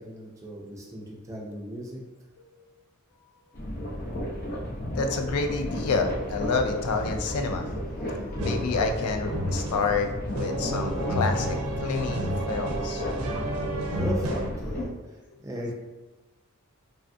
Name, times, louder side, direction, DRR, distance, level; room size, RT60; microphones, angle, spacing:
voice 1, 0.0-2.0 13.9-14.4 14.6-14.9 15.4-15.7, equal, 15° right, -2 dB, 0.4 m, -36 dB
voice 2, 2.4-2.7 4.9-13.5 15.3-15.4, left 4 dB, 90° left, 5 dB, 0.4 m, -29 dB
sound 1, 3.5-14.9, equal, 40° left, 0.6 m, -33 dB
sound 2, 8.4-14.5, right 1 dB, 75° right, 0.4 m, -31 dB
3.3 x 2.3 x 2.5 m, 1.1 s
head